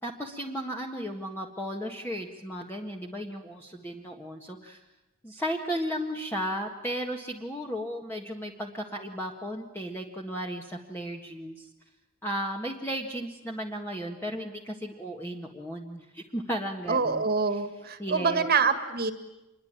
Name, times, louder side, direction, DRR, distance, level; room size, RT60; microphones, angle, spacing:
voice 1, 0.0-4.8 5.2-11.7 12.2-17.2 17.5-17.6 18.0-18.5, equal, 10° left, 1 dB, 1.7 m, -35 dB
voice 2, 16.9-19.1, right 5 dB, 45° right, 9 dB, 1.9 m, -26 dB
27.0 x 22.0 x 8.9 m, 0.98 s
head